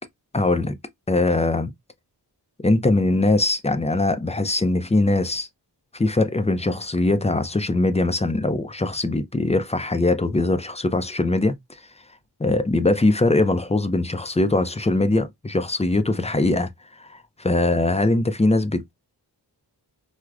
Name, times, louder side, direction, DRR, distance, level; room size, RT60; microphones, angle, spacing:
voice 1, 0.3-0.8 1.1-1.7 2.6-5.5 5.9-11.5 12.4-16.7 17.0-18.9, left 2 dB, 15° left, 0.4 m, -21 dB
4.6 x 2.1 x 2.4 m
wide cardioid pair, 95°, 40 cm